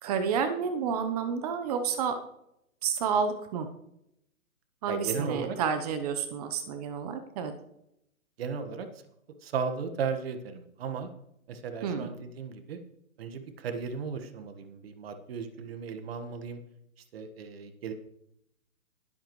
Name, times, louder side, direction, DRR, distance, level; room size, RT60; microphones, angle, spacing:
voice 1, 0.0-2.2 2.8-3.7 4.8-7.5 11.8-12.1, right 6 dB, 30° right, 8 dB, 1.0 m, -30 dB
voice 2, 4.9-5.6 8.4-8.9 9.4-11.1 11.5-12.8 13.2-16.6 17.1-17.9, right 6 dB, 45° right, 7 dB, 1.6 m, -35 dB
20.0 x 8.1 x 3.2 m, 0.79 s
hypercardioid pair, 145°, 41 cm